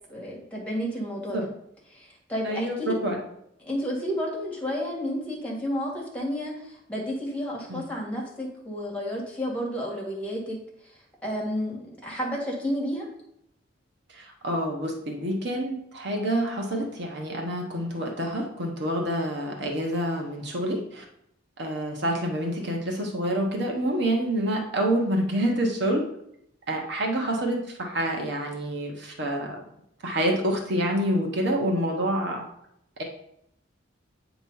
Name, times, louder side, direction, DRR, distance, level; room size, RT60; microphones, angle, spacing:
voice 1, 0.1-1.5 1.9-3.0 3.6-10.6 10.9-13.1, equal, 5° left, -3 dB, 1.8 m, -31 dB
voice 2, 2.4-2.8 3.0-3.2 7.7-7.8 14.1-21.0 21.6-26.0 26.7-29.6 30.0-32.4, right 1 dB, 60° right, 1 dB, 1.1 m, -27 dB
8.7 x 3.0 x 5.5 m, 0.76 s
head